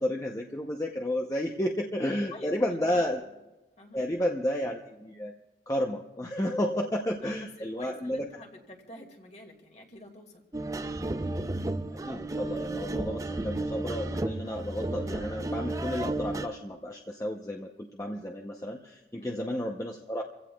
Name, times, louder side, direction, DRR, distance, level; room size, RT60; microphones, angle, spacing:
voice 1, 0.0-3.2 3.9-5.3 5.7-8.3 12.0-20.2, left 1 dB, 20° left, 1 dB, 0.7 m, -32 dB
voice 2, 2.1-3.2 3.8-4.0 7.2-7.5 7.7-10.4 19.2-19.5, left 1 dB, 40° left, 3 dB, 2.1 m, -48 dB
sound 1, 10.5-16.5, right 2 dB, 20° right, 0.5 m, -33 dB
29.0 x 16.0 x 2.3 m, 1.1 s
head